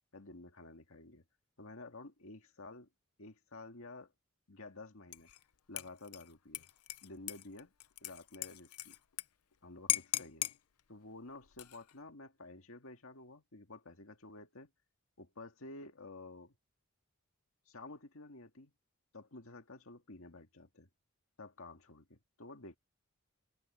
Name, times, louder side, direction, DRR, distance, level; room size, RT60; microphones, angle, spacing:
voice 1, 0.1-1.2 1.6-2.9 3.2-4.1 4.5-5.3 5.7-6.7 7.0-7.7 8.0-9.0 9.6-10.5 10.9-14.7 15.2-16.6 17.7-18.7 19.1-20.9 21.4-22.8, left 2 dB, 70° left, 2.0 m, -51 dB
Dishes pots and pans / Liquid, 5.1-5.4 5.8-9.2 9.5-9.6 9.9-10.6 11.4-11.9, left 16 dB, 85° left, 0.7 m, -38 dB
head